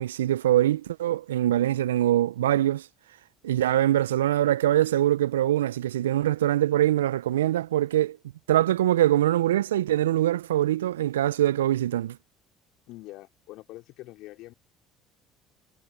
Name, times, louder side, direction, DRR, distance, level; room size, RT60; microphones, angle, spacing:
voice 1, 0.0-2.9 3.4-8.2 8.5-12.2, right 13 dB, 85° right, 0.4 m, -23 dB
voice 2, 12.9-14.5, left 18 dB, 65° left, 3.2 m, -44 dB
hypercardioid pair, 60°, 0 cm